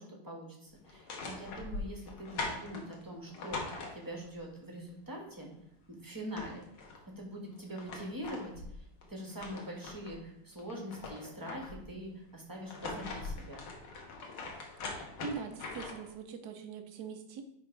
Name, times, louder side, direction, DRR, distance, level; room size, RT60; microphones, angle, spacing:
voice 1, 0.0-5.5 6.0-6.6 7.2-8.5 8.8-13.7, equal, 10° right, 0 dB, 1.2 m, -43 dB
sound 1, 0.8-4.4 5.8-5.9 6.2-7.0 7.5-10.2 10.6-11.9 12.5-16.1, left 3 dB, 75° left, 2.1 m, -42 dB
voice 2, 14.9-17.4, right 5 dB, 60° right, 7 dB, 1.3 m, -42 dB
10.5 x 3.6 x 4.6 m, 0.75 s
omnidirectional pair, 2.3 m